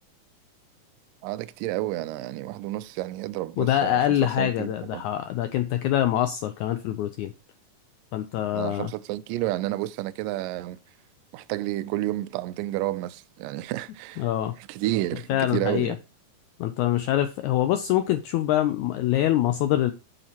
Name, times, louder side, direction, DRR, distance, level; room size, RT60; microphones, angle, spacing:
voice 1, 1.2-4.1 4.4-5.0 8.5-10.8 11.3-14.3 14.6-16.0, right 16 dB, 80° right, 2.1 m, -30 dB
voice 2, 3.6-7.3 8.1-8.9 14.2-14.6 15.3-16.0 16.6-19.9, left 12 dB, 85° left, 1.7 m, -24 dB
8.1 x 7.1 x 2.9 m
omnidirectional pair, 4.0 m